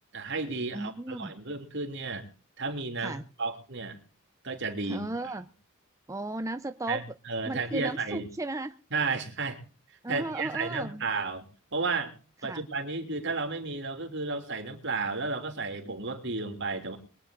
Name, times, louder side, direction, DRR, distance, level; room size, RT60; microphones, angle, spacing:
voice 1, 0.1-2.3 2.6-4.0 4.4-5.1 6.9-8.3 8.9-9.6 10.1-11.5 11.7-12.1 12.4-17.0, right 3 dB, 55° right, 6 dB, 3.2 m, -33 dB
voice 2, 0.7-1.3 3.0-3.2 4.8-5.5 6.1-7.0 7.5-8.8 10.0-11.0 12.4-12.6, right 2 dB, 15° right, 10 dB, 0.6 m, -35 dB
23.0 x 10.0 x 3.9 m, 0.37 s
head